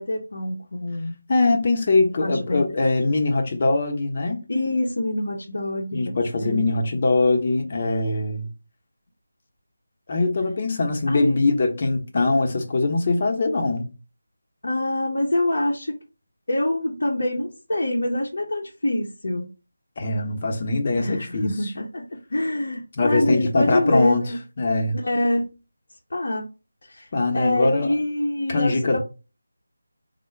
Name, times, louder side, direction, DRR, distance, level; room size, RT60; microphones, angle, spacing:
voice 1, 0.0-1.2 2.2-2.6 4.5-6.6 11.1-11.4 14.6-15.9 16.5-19.5 21.0-24.4 25.0-25.5 26.1-26.4 26.8-27.1 27.3-29.0, left 1 dB, 70° left, 0.7 m, -25 dB
voice 2, 1.3-4.4 5.9-8.5 10.1-13.9 20.0-21.5 23.0-24.3 24.6-25.0 27.1-27.9 28.5-29.0, left 3 dB, 35° left, 0.8 m, -22 dB
3.6 x 2.1 x 3.2 m
figure-of-eight pair, 165°, 0 cm